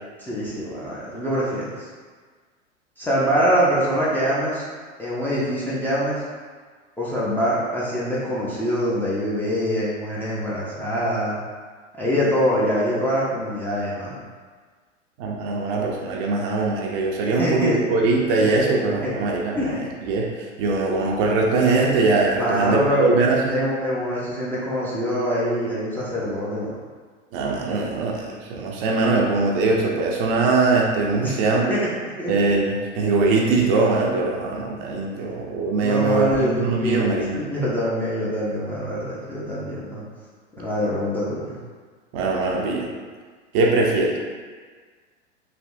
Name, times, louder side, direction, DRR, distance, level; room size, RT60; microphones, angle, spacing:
voice 1, 0.2-1.9 3.0-4.7 5.0-6.2 7.0-11.4 11.9-14.1 17.4-17.9 18.4-19.2 19.6-19.9 22.3-23.1 23.5-26.7 31.2-31.9 32.2-32.3 35.8-40.0 40.6-41.6, equal, 5° left, -8 dB, 0.5 m, -24 dB
voice 2, 15.2-19.8 20.1-23.6 27.3-31.6 32.3-37.4 42.1-42.9 43.5-44.2, right 3 dB, 45° right, -1 dB, 0.6 m, -21 dB
3.4 x 2.7 x 2.5 m, 1.5 s
hypercardioid pair, 95°, 37 cm